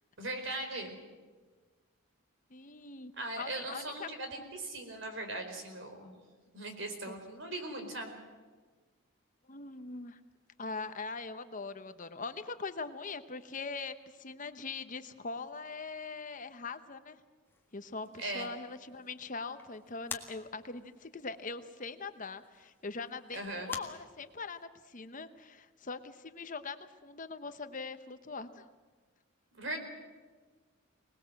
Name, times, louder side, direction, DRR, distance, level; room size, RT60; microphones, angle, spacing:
voice 1, 0.2-1.0 3.2-6.1 6.5-8.2 18.2-18.5 23.3-23.7 29.5-29.8, right 2 dB, 60° right, 5 dB, 4.6 m, -39 dB
voice 2, 2.5-4.1 7.1-7.2 9.5-10.2 10.6-17.2 17.7-28.7, left 4 dB, 40° left, 10 dB, 1.0 m, -42 dB
sound 1, 17.4-24.7, left 4 dB, 10° left, 1.8 m, -50 dB
25.5 x 20.0 x 7.7 m, 1.4 s
head